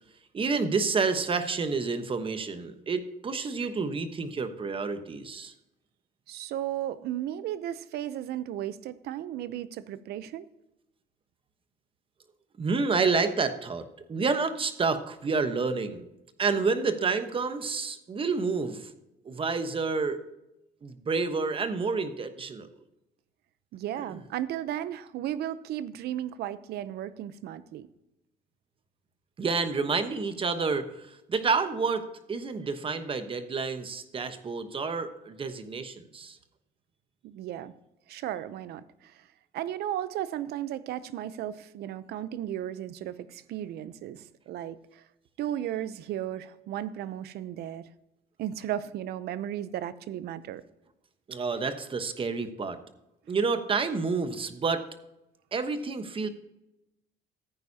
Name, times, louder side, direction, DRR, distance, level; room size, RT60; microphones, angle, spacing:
voice 1, 0.3-5.5 12.6-16.1 16.4-18.9 19.2-20.2 20.8-22.7 24.1-24.2 29.4-36.4 51.3-52.8 53.3-54.9 55.5-56.3, right 4 dB, 30° right, 9 dB, 1.1 m, -29 dB
voice 2, 6.3-10.5 23.7-27.9 37.2-37.7 38.1-39.1 39.5-45.0 45.4-47.9 48.4-50.6, right 11 dB, 75° right, 15 dB, 0.7 m, -35 dB
14.5 x 9.2 x 2.8 m, 0.90 s
cardioid pair, 110°, 17 cm